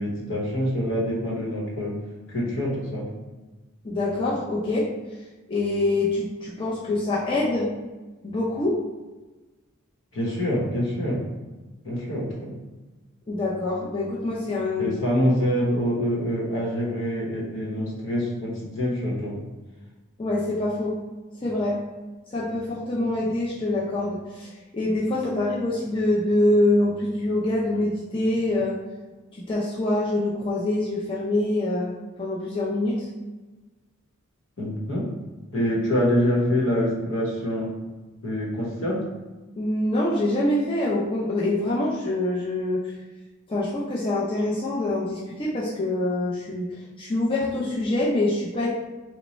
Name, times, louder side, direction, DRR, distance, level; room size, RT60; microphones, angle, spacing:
voice 1, 0.0-1.9 2.3-3.1 10.1-11.2 11.8-12.5 14.8-19.3 34.6-35.1 35.5-37.7 38.2-39.0, equal, 65° left, -4 dB, 1.0 m, -25 dB
voice 2, 3.8-4.9 5.5-7.7 8.2-8.8 13.3-14.9 20.2-20.9 21.4-21.8 22.3-28.8 29.4-31.9 32.2-33.1 39.6-42.8 43.5-46.7 47.0-48.7, left 2 dB, 25° left, -6 dB, 0.5 m, -25 dB
3.0 x 2.2 x 4.1 m, 1.2 s
head